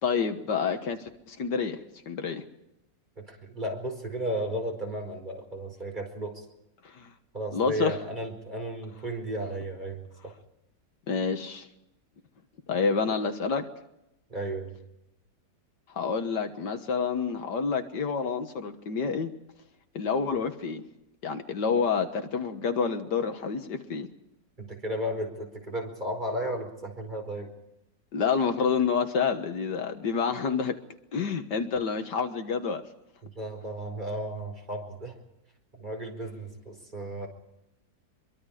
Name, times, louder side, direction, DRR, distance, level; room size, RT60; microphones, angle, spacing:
voice 1, 0.0-1.8 2.1-2.4 6.8-7.1 7.5-8.0 11.1-11.7 12.7-13.7 15.9-19.3 19.9-20.8 21.2-24.1 28.1-30.8 31.1-32.8, left 5 dB, 75° left, 7 dB, 2.0 m, -28 dB
voice 2, 3.2-6.4 7.3-10.3 14.3-14.8 24.6-27.5 33.2-35.2 35.7-37.3, right 1 dB, 25° right, 2 dB, 4.9 m, -34 dB
24.5 x 23.5 x 5.0 m, 0.86 s
omnidirectional pair, 1.9 m